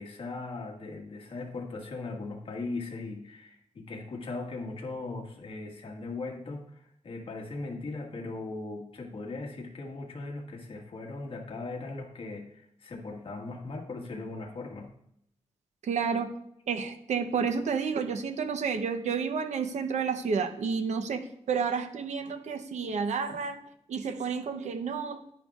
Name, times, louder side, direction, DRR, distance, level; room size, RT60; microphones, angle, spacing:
voice 1, 0.0-14.9 23.3-23.4, left 3 dB, 50° left, 0 dB, 1.7 m, -39 dB
voice 2, 15.8-16.3 16.7-23.6 23.9-25.3, right 6 dB, 85° right, 8 dB, 0.8 m, -30 dB
10.5 x 10.5 x 2.4 m, 0.76 s
wide cardioid pair, 125°, 12 cm